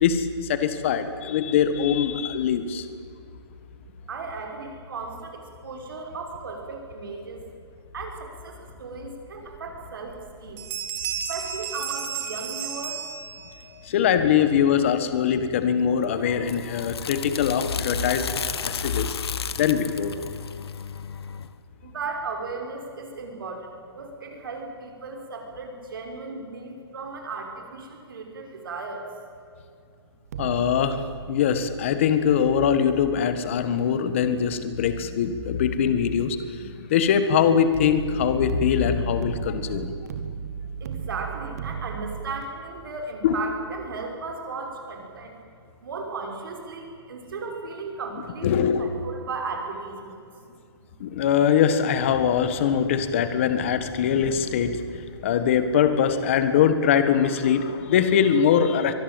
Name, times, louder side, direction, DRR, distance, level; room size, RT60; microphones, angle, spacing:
voice 1, 0.0-2.9 13.8-19.2 19.6-20.2 30.4-31.0 31.3-39.9 43.2-43.3 48.4-48.9 51.0-54.8 55.2-58.9, left 8 dB, 25° left, 11 dB, 1.6 m, -22 dB
voice 2, 4.1-7.4 7.9-10.6 11.3-13.1 21.8-29.1 40.8-45.4 45.8-48.5 48.8-50.2 50.8-50.9, right 4 dB, 50° right, 2 dB, 5.8 m, -36 dB
sound 1, 9.5-9.6 10.1-10.3 10.6-13.7, right 8 dB, 15° right, 2.0 m, -33 dB
sound 2, 16.0-21.5, left 7 dB, 65° left, 1.5 m, -34 dB
sound 3, 30.3-35.3 37.7-42.4, right 7 dB, 35° right, 1.9 m, -37 dB
24.5 x 19.5 x 9.2 m, 2.4 s
hypercardioid pair, 175°, 14 cm